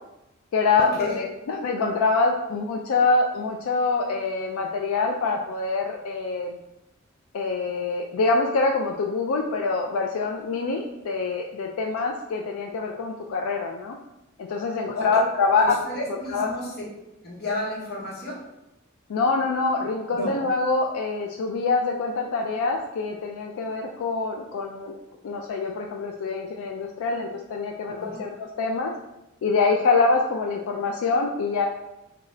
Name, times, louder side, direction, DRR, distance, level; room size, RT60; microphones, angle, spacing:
voice 1, 0.5-6.6 7.3-14.0 14.4-15.8 16.1-16.5 19.1-24.9 25.2-28.9 29.4-31.7, left 3 dB, 85° left, 1 dB, 0.3 m, -25 dB
voice 2, 15.6-16.7 17.2-18.4 20.1-20.3 27.9-28.2, left 1 dB, 50° left, -4 dB, 1.1 m, -32 dB
3.6 x 2.3 x 3.1 m, 0.92 s
head